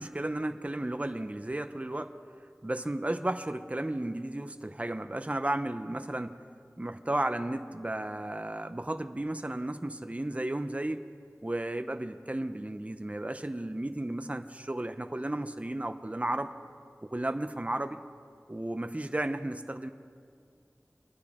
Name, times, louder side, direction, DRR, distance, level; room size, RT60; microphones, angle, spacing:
voice 1, 0.0-2.1 2.6-6.4 6.8-11.0 11.4-16.5 17.0-18.0 18.5-19.9, right 1 dB, 25° right, 8 dB, 0.6 m, -33 dB
26.5 x 10.0 x 3.6 m, 2.2 s
wide cardioid pair, 50°, 5 cm